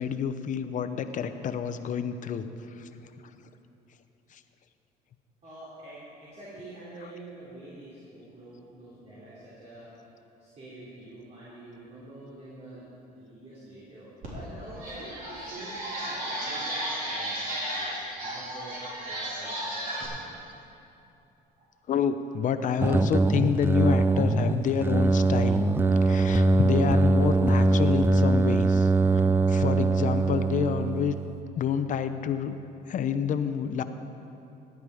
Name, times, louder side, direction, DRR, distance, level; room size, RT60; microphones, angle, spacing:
voice 1, 0.0-2.9 4.3-4.4 17.6-17.9 21.9-25.6 26.0-31.2 31.6-32.6 32.9-33.8, left 7 dB, 50° left, 10 dB, 0.7 m, -29 dB
voice 2, 5.4-9.9 10.4-18.8 19.1-20.1 21.6-21.7, right 1 dB, 40° right, -8 dB, 3.3 m, -46 dB
sound 1, 14.2-14.3 14.7-20.0, right 1 dB, 55° right, 3.8 m, -34 dB
sound 2, 22.8-31.4, right 3 dB, 15° right, 0.3 m, -22 dB
15.0 x 10.5 x 5.0 m, 2.8 s
cardioid pair, 110°, 17 cm